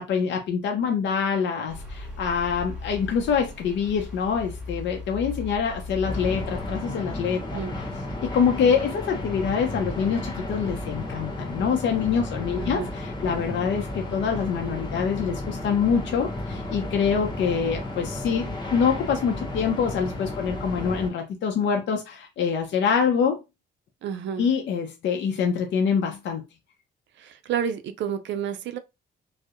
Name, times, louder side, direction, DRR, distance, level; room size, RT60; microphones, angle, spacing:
voice 1, 0.0-7.6 8.2-23.4 24.4-26.4, left 6 dB, 65° left, 0.5 m, -25 dB
sound 1, 1.7-6.8, left 3 dB, 5° right, 1.3 m, -37 dB
sound 2, 6.0-21.1, left 1 dB, 20° left, 0.7 m, -33 dB
voice 2, 24.0-24.5 27.2-28.8, right 8 dB, 65° right, 0.4 m, -30 dB
2.6 x 2.0 x 2.4 m
cardioid pair, 90°, 20 cm